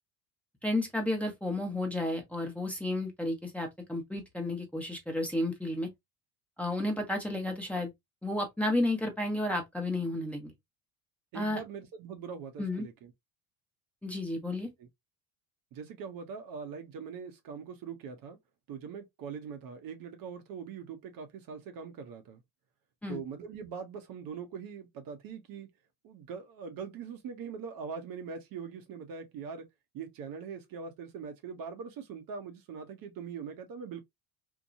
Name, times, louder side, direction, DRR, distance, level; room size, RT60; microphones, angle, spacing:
voice 1, 0.6-5.9 6.6-7.9 8.2-10.5 11.3-11.6 12.6-12.9 14.0-14.7 23.0-23.2, left 1 dB, 5° left, 0.9 m, -32 dB
voice 2, 11.3-13.1 14.8-14.9 15.7-18.4 18.7-22.4 23.1-25.7 26.0-29.7 29.9-34.0, right 6 dB, 50° right, 0.8 m, -42 dB
2.8 x 2.2 x 2.5 m
hypercardioid pair, 75°, 44 cm